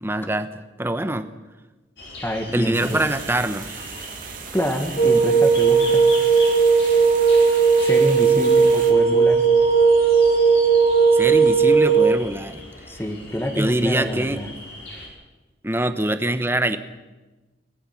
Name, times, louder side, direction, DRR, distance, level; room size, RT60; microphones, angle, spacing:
voice 1, 0.0-1.3 2.5-3.8 11.1-12.6 13.6-14.4 15.6-16.8, right 1 dB, 15° right, 10 dB, 1.0 m, -24 dB
sound 1, 2.0-15.1, left 2 dB, 75° left, 5.8 m, -39 dB
voice 2, 2.2-3.0 4.5-6.0 7.8-9.4 12.9-14.5, equal, 15° left, 4 dB, 1.8 m, -27 dB
sound 2, 2.7-8.9, right 7 dB, 50° right, 2.6 m, -38 dB
sound 3, 5.0-12.1, right 5 dB, 55° left, 1.8 m, -16 dB
25.0 x 18.0 x 6.1 m, 1.1 s
head